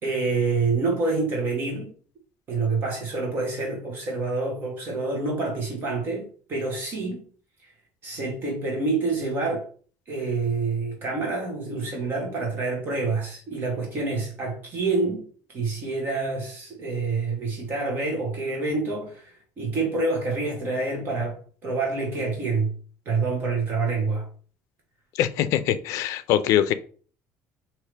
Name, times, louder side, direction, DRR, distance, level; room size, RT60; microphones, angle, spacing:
voice 1, 0.0-1.9 2.5-7.2 7.6-7.7 8.0-9.7 10.1-15.3 15.5-22.7 23.0-24.3, right 3 dB, 40° right, 1.3 m, -27 dB
voice 2, 25.2-26.7, left 11 dB, 65° left, 0.4 m, -23 dB
4.6 x 2.9 x 3.3 m
cardioid pair, 150°, 6 cm